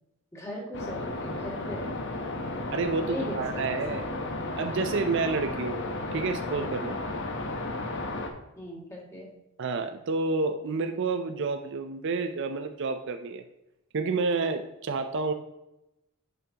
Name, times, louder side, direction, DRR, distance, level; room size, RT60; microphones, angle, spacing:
voice 1, 0.3-2.0 3.0-3.4 3.7-4.0 8.6-9.3, left 1 dB, 15° left, -4 dB, 2.3 m, -39 dB
sound 1, 0.7-8.3, left 2 dB, 60° left, 0.9 m, -33 dB
voice 2, 2.7-4.1 4.6-7.0 9.6-13.4 13.9-15.3, right 4 dB, 60° right, 8 dB, 0.5 m, -29 dB
10.5 x 5.8 x 2.9 m, 0.90 s
head